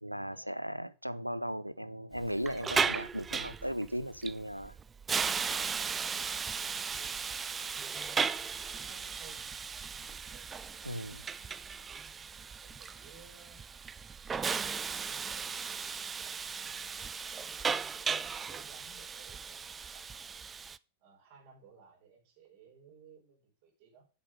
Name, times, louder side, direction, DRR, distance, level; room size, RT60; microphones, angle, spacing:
voice 1, 0.0-4.8 10.8-11.2, equal, 90° right, 0.5 m, -37 dB
Hiss, 2.2-20.8, right 6 dB, 20° right, 0.4 m, -36 dB
voice 2, 6.1-10.8 11.3-13.6 14.3-17.6 17.9-20.3 21.0-24.0, right 5 dB, 50° right, 4.0 m, -60 dB
7.8 x 6.9 x 5.0 m
figure-of-eight pair, 90°, 0 cm